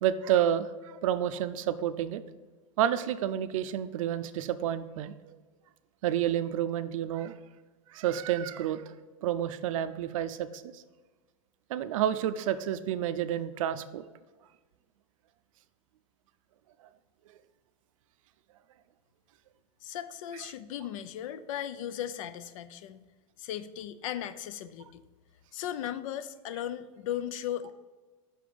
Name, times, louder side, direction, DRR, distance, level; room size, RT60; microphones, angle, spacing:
voice 1, 0.0-2.2 2.8-5.4 6.0-7.3 7.9-8.8 9.2-10.8 11.7-14.0, right 10 dB, 75° right, 13 dB, 0.4 m, -30 dB
voice 2, 19.8-23.0 23.4-25.0 25.5-27.7, left 11 dB, 70° left, 13 dB, 0.4 m, -37 dB
5.6 x 3.5 x 5.1 m, 1.3 s
hypercardioid pair, 105°, 17 cm